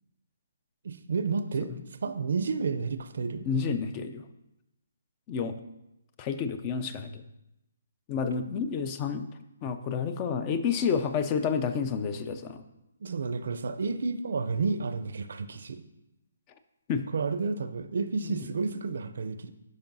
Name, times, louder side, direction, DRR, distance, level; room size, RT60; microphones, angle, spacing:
voice 1, 0.8-1.7 2.0-3.5 8.2-8.3 13.0-15.8 17.1-19.5, right 4 dB, 65° right, 12 dB, 0.5 m, -31 dB
voice 2, 3.5-4.2 5.3-5.6 6.2-7.2 8.1-9.3 9.6-12.6 16.9-17.1 18.2-18.4, left 6 dB, 25° left, 10 dB, 0.4 m, -30 dB
11.5 x 5.2 x 2.7 m, 0.89 s
hypercardioid pair, 155°, 0 cm